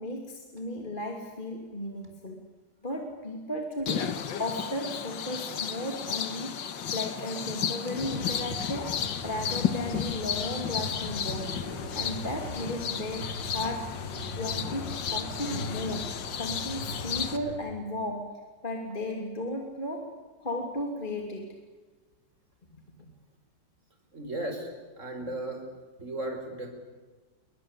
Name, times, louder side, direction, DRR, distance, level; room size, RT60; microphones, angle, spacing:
voice 1, 0.0-2.4 2.8-6.6 6.9-11.6 11.9-13.9 14.4-16.1 16.4-18.3 18.6-20.1 20.4-21.5, left 1 dB, 25° left, 2 dB, 3.0 m, -35 dB
sound 1, 3.9-17.4, left 8 dB, 85° left, 2.1 m, -33 dB
sound 2, 8.0-17.5, left 1 dB, 60° left, 8.4 m, -39 dB
voice 2, 24.1-24.7 25.0-25.6 26.0-26.7, right 1 dB, 40° right, 4 dB, 5.8 m, -35 dB
28.0 x 24.0 x 8.3 m, 1.3 s
omnidirectional pair, 2.0 m